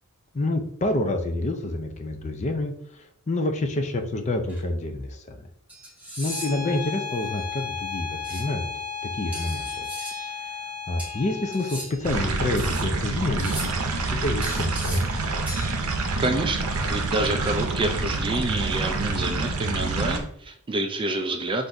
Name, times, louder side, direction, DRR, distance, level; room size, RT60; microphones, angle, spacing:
voice 1, 0.3-5.4 6.2-8.7 9.0-9.9 10.3-10.6 10.9-15.1, left 2 dB, 30° left, 6 dB, 0.5 m, -28 dB
sound 1, 4.5-4.6 5.7-6.7 8.2-8.4 9.3-10.3 11.0-12.1 12.6-12.9 13.4-13.9 14.4-15.2 15.5-15.7, equal, 5° right, 1.3 m, -37 dB
Bowed string instrument, 6.3-11.9, left 5 dB, 75° left, 1.0 m, -34 dB
sound 2, 12.0-20.2, right 3 dB, 75° right, 0.6 m, -27 dB
voice 2, 16.2-16.6 16.9-21.7, right 2 dB, 25° right, 5 dB, 0.4 m, -28 dB
3.9 x 2.6 x 4.5 m, 0.71 s
head